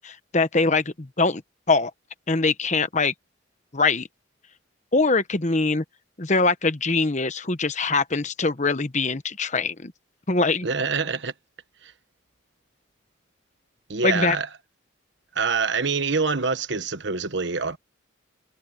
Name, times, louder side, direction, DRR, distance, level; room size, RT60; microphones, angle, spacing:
voice 1, 0.0-1.4 1.7-1.9 2.3-3.1 3.7-4.1 4.9-5.8 6.2-9.9 10.3-10.7 14.0-14.4, left 3 dB, 35° left, 1.1 m, -23 dB
voice 2, 10.6-11.3 11.8-11.9 13.9-14.5 15.3-17.8, right 4 dB, 60° right, 1.3 m, -25 dB
head